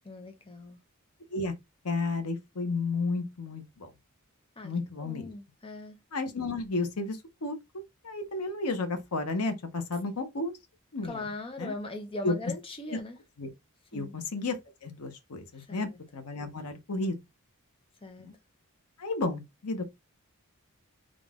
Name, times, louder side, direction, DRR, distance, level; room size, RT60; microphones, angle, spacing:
voice 1, 0.0-0.8 4.6-4.7 5.0-6.0 11.0-13.2 13.9-14.1 15.7-16.0 18.0-18.3, left 2 dB, 25° left, 0.7 m, -40 dB
voice 2, 1.8-3.9 4.6-5.3 6.1-7.6 8.0-10.5 10.9-11.3 11.6-11.7 12.2-12.4 13.4-13.5 13.9-17.2 18.2-18.3 19.0-19.8, left 3 dB, 85° left, 0.9 m, -32 dB
3.8 x 2.5 x 3.5 m
head